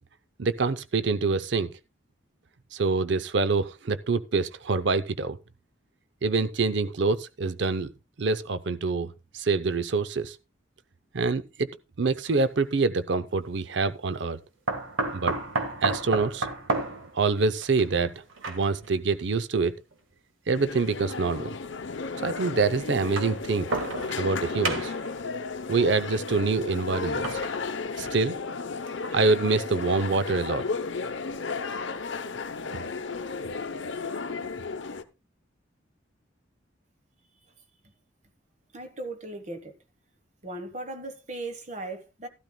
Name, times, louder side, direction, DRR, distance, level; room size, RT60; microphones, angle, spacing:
voice 1, 0.4-1.7 2.7-5.4 6.2-7.9 8.2-10.4 11.1-11.7 12.0-14.4 15.1-15.4 15.8-16.5 17.1-18.1 18.5-19.7 20.5-21.6 22.2-23.7 24.2-24.9 25.7-27.4 27.9-28.4 29.1-30.6, right 4 dB, 65° right, 0.6 m, -26 dB
sound 1, 12.2-12.4 14.7-18.9 19.9-20.0 21.2-21.3 22.9-24.4 24.6-25.2 27.0-28.4 28.9-29.0 29.3-29.4, right 3 dB, 85° right, 1.6 m, -32 dB
sound 2, 20.5-35.0, left 4 dB, 65° left, 0.8 m, -34 dB
voice 2, 38.7-39.7 40.4-42.3, right 2 dB, 35° right, 1.3 m, -37 dB
13.5 x 12.5 x 2.2 m
head